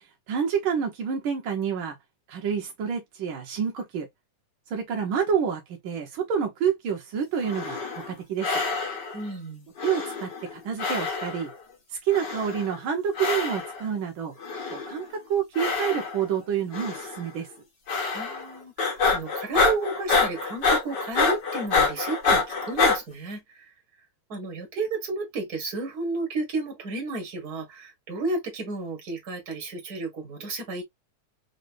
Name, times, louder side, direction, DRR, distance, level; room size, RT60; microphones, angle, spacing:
voice 1, 0.0-2.0 2.3-4.1 4.7-7.8 8.1-8.6 9.8-11.5 11.9-14.3 14.7-17.5, right 7 dB, 80° right, 1.1 m, -28 dB
sound 1, 7.4-8.1 8.4-9.2 9.8-10.5 10.8-11.5 12.1-12.7 13.1-13.8 14.4-15.0 15.5-16.3 16.7-17.2 17.9-18.5 18.8-23.0, left 4 dB, 45° left, 1.6 m, -26 dB
voice 2, 9.1-9.7 18.1-23.7 24.3-30.8, right 3 dB, 40° right, 1.7 m, -32 dB
4.8 x 3.2 x 2.5 m
omnidirectional pair, 3.5 m